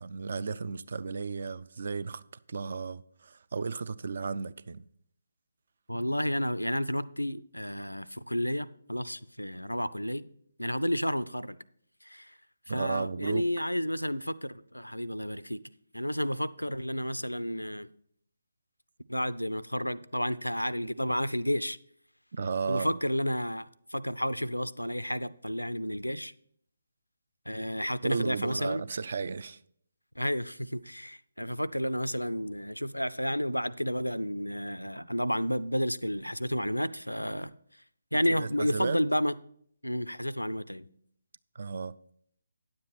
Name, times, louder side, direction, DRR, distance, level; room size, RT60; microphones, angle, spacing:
voice 1, 0.0-2.2 2.5-4.9 12.7-13.5 22.3-23.0 28.0-29.6 38.3-39.0 41.6-42.0, right 5 dB, 50° right, 0.4 m, -34 dB
voice 2, 5.9-10.3 10.6-11.6 12.0-12.3 12.7-15.6 15.9-17.9 19.1-21.8 22.7-26.3 27.5-28.8 30.2-37.5 38.1-39.3 39.8-40.9, equal, 85° left, 0.4 m, -31 dB
9.8 x 7.4 x 4.2 m
figure-of-eight pair, 145°, 0 cm